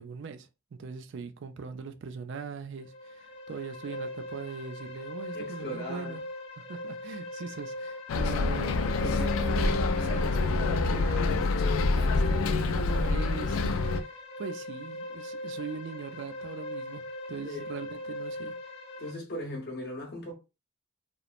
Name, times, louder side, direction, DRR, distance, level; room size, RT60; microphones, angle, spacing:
voice 1, 0.0-6.2 6.6-14.1 14.4-17.0 17.3-18.6, right 5 dB, 60° right, 0.4 m, -41 dB
sound 1, 2.8-19.1, left 1 dB, 30° left, 0.5 m, -41 dB
voice 2, 5.3-6.2 17.4-17.6 19.0-20.3, left 1 dB, 50° left, 0.9 m, -38 dB
Bus, 8.1-14.0, left 3 dB, 85° left, 0.3 m, -26 dB
3.0 x 2.0 x 2.4 m
head